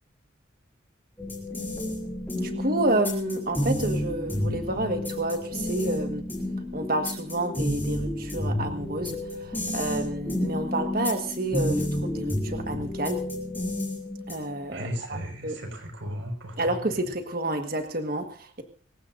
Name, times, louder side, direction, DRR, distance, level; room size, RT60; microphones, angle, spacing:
sound 1, 1.2-14.6, left 1 dB, 10° left, 5.4 m, -31 dB
voice 1, 2.3-6.2 6.7-13.2 14.3-15.2 15.4-15.5 16.6-18.6, right 1 dB, 45° right, 6 dB, 1.5 m, -29 dB
voice 2, 14.7-17.0, equal, 80° right, 5 dB, 5.2 m, -36 dB
26.0 x 15.5 x 2.6 m, 0.43 s
head